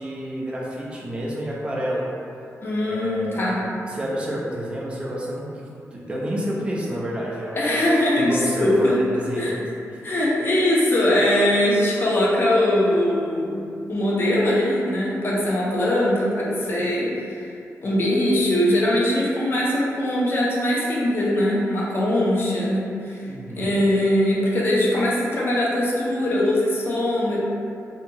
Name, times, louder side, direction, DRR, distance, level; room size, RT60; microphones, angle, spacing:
voice 1, 0.0-2.1 2.8-3.6 3.9-7.9 8.2-9.6 9.9-10.0 23.3-23.7, equal, 20° right, -5 dB, 0.4 m, -29 dB
voice 2, 2.6-3.6 7.6-8.9 9.3-9.5 10.0-17.5 17.8-23.2 23.6-27.4, left 1 dB, 40° left, -5 dB, 0.5 m, -21 dB
2.8 x 2.2 x 2.6 m, 2.6 s
wide cardioid pair, 165°, 6 cm